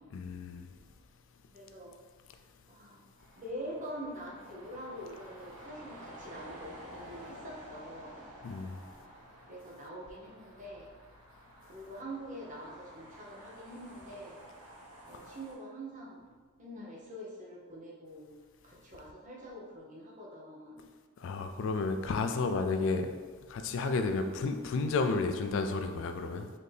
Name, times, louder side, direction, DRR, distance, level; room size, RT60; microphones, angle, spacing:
voice 1, 0.1-0.7 8.4-8.8 21.2-23.1 23.5-26.5, left 3 dB, 60° left, 7 dB, 0.3 m, -32 dB
voice 2, 1.5-1.9 2.7-3.0 3.4-8.2 9.4-10.9 11.6-14.4 15.0-16.3 16.6-18.3 18.6-20.9 22.0-22.4 24.1-24.5, equal, 35° right, -3 dB, 0.7 m, -45 dB
sound 1, 3.2-15.5, right 1 dB, 90° right, 1.3 m, -52 dB
4.1 x 2.7 x 3.3 m, 1.5 s
head